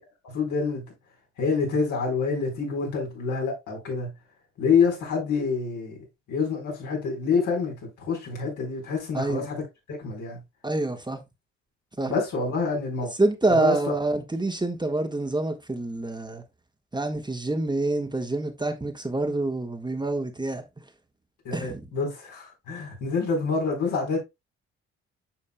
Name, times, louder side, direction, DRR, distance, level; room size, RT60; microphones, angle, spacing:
voice 1, 0.2-0.8 1.4-4.1 4.6-6.0 6.3-9.6 10.0-10.4 12.1-13.1 13.5-13.9 21.4-24.2, left 5 dB, 70° left, 4.2 m, -27 dB
voice 2, 9.1-9.5 10.6-11.2 12.0-12.1 13.2-16.4 16.9-20.6 21.5-21.9, right 2 dB, 15° right, 1.5 m, -26 dB
8.9 x 6.3 x 2.2 m
hypercardioid pair, 55°, 31 cm